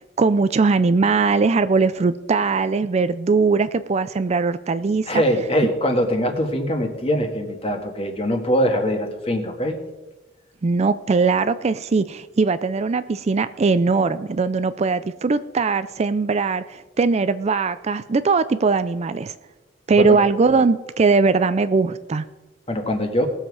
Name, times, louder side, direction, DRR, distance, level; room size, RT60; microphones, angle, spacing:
voice 1, 0.2-5.2 10.6-19.3 19.9-22.3, right 4 dB, 35° right, 13 dB, 0.4 m, -20 dB
voice 2, 5.1-9.8 20.0-20.2 22.7-23.3, equal, 30° left, 4 dB, 1.7 m, -22 dB
19.0 x 7.4 x 4.8 m, 1.1 s
head